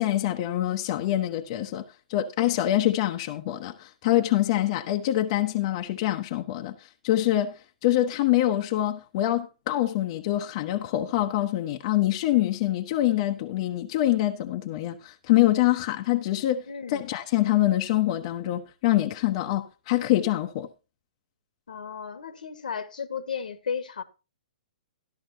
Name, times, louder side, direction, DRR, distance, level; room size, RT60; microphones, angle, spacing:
voice 1, 0.0-1.8 2.1-7.5 7.8-20.7, left 14 dB, 45° left, 1.2 m, -25 dB
voice 2, 16.7-17.1 21.7-24.0, left 6 dB, 75° left, 1.8 m, -34 dB
14.0 x 12.0 x 2.9 m
hypercardioid pair, 125°, 4 cm